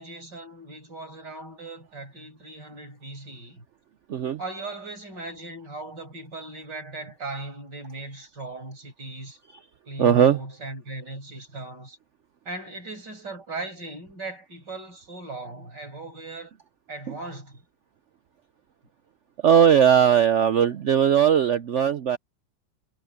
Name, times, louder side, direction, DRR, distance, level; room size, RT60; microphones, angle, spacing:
voice 1, 0.0-3.6 4.4-9.4 9.9-12.0 12.5-16.5 16.9-17.5, right 2 dB, 65° right, 7.8 m, -38 dB
voice 2, 10.0-10.4 19.4-22.2, right 8 dB, 80° right, 0.6 m, -18 dB
omnidirectional pair, 2.0 m